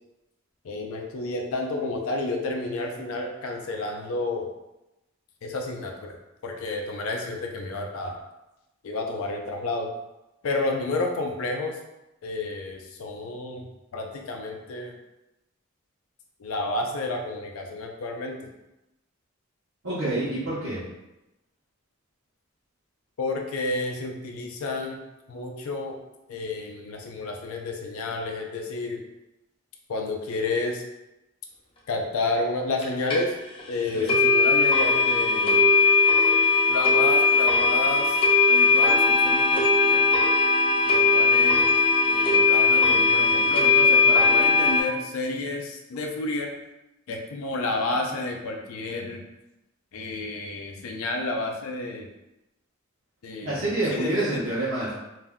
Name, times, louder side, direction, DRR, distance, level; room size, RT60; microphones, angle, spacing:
voice 1, 0.6-4.5 5.4-6.1 6.4-8.2 8.8-9.9 10.4-11.8 12.2-13.7 13.9-14.9 16.4-18.5 23.2-25.0 25.3-26.0 26.3-29.0 29.9-30.8 31.9-33.3 33.7-35.8 36.7-38.2 38.5-40.0 40.9-41.7 42.1-46.5 47.1-49.2 49.9-52.1 53.2-53.6 53.9-54.4, left 2 dB, 80° left, 2 dB, 0.4 m, -30 dB
voice 2, 19.8-20.8 33.9-34.1 53.4-54.9, right 2 dB, 75° right, -9 dB, 0.9 m, -27 dB
sound 1, 32.8-32.9 33.1-33.2 33.6-33.7 34.1-44.8, left 4 dB, 25° left, 0.5 m, -19 dB
2.6 x 2.2 x 3.5 m, 0.95 s
head